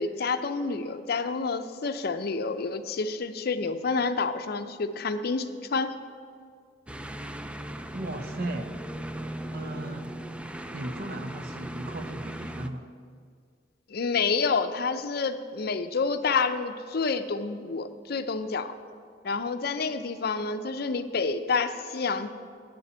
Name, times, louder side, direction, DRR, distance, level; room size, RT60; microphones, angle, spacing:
voice 1, 0.0-5.9 13.9-18.7 19.2-22.3, left 4 dB, 55° left, 10 dB, 0.6 m, -28 dB
sound 1, 6.9-12.7, right 1 dB, 5° right, 0.3 m, -38 dB
voice 2, 7.9-8.8 9.5-10.1 10.7-12.9, right 1 dB, 55° right, 7 dB, 0.8 m, -36 dB
8.4 x 7.0 x 8.6 m, 2.1 s
head